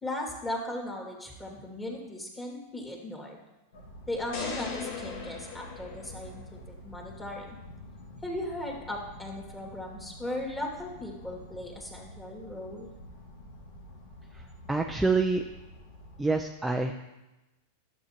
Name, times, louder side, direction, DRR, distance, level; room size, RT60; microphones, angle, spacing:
voice 1, 0.0-3.4 4.1-7.6 8.2-12.9, left 1 dB, 15° left, -1 dB, 2.3 m, -37 dB
sound 1, 3.7-16.4, left 1 dB, 80° left, 1.8 m, -48 dB
sound 2, 4.3-6.6, left 5 dB, 60° left, 1.7 m, -38 dB
voice 2, 14.7-15.4 16.2-17.0, right 3 dB, 5° right, 3 dB, 0.5 m, -26 dB
11.5 x 7.4 x 2.9 m, 1.0 s
hypercardioid pair, 105°, 0 cm